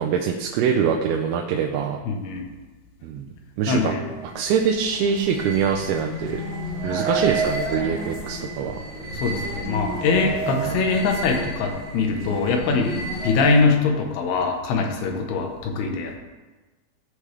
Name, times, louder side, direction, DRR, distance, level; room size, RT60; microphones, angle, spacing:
voice 1, 0.0-2.0 3.0-3.3 3.6-4.0 4.4-6.4 6.8-8.8 10.6-10.8, right 7 dB, 85° right, 2 dB, 2.5 m, -24 dB
voice 2, 2.1-2.4 3.7-4.1 9.1-16.2, left 4 dB, 85° left, 3 dB, 2.9 m, -23 dB
sound 1, 4.1-13.8, right 2 dB, 55° left, 2.7 m, -31 dB
sound 2, 4.8-11.2, right 2 dB, 60° right, 1.8 m, -40 dB
13.5 x 5.0 x 3.3 m, 1.2 s
omnidirectional pair, 4.4 m